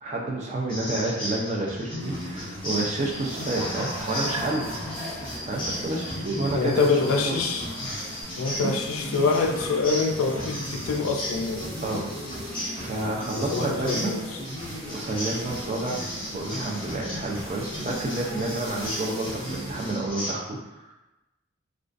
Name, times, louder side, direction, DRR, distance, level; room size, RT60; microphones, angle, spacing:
voice 1, 0.0-4.7 5.5-7.0 7.2-7.3 8.5-8.7 11.8-12.1 12.8-14.1 14.9-20.9, right 2 dB, 35° right, -2 dB, 0.3 m, -30 dB
sound 1, 0.7-20.3, equal, 25° left, 0.6 m, -36 dB
sound 2, 2.0-19.9, equal, 50° right, 1.1 m, -39 dB
Human voice / Cricket, 3.1-8.2, left 1 dB, 15° right, 1.0 m, -38 dB
voice 2, 6.5-7.7 8.4-11.6 13.5-14.2, left 4 dB, 80° left, 3 dB, 0.3 m, -25 dB
2.4 x 2.2 x 2.4 m, 1.0 s
head